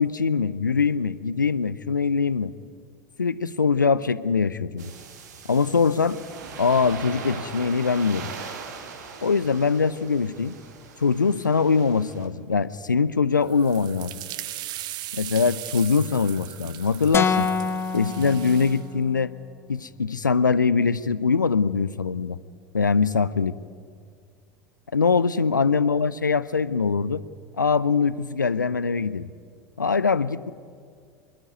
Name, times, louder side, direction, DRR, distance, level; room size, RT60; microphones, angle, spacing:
voice 1, 0.0-2.5 3.2-4.9 5.5-6.2 6.6-8.3 9.2-10.6 11.0-14.2 15.1-17.5 17.9-19.3 19.7-22.4 22.7-23.5 24.9-27.2 27.6-29.3 29.8-30.5, left 5 dB, 85° left, 17 dB, 0.6 m, -22 dB
sound 1, 4.8-12.3, right 5 dB, 65° right, 2.1 m, -40 dB
sound 2, 13.4-18.8, right 14 dB, 45° right, 1.0 m, -38 dB
sound 3, 17.1-19.2, left 5 dB, 25° left, 1.0 m, -26 dB
24.5 x 12.0 x 9.4 m, 2.2 s
figure-of-eight pair, 75°, 10 cm